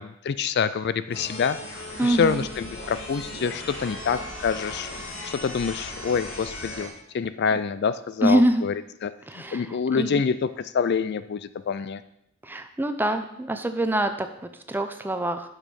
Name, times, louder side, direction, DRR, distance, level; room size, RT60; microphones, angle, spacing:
voice 1, 0.0-1.6 2.0-4.9 5.2-8.7 9.0-12.0, left 6 dB, 55° left, 14 dB, 0.4 m, -26 dB
sound 1, 1.1-6.9, left 1 dB, 70° left, 2.0 m, -37 dB
voice 2, 2.0-2.5 7.5-7.6 8.2-8.6 9.3-10.2 12.4-15.5, right 1 dB, 10° right, 8 dB, 0.6 m, -25 dB
9.0 x 6.5 x 5.3 m, 0.78 s
head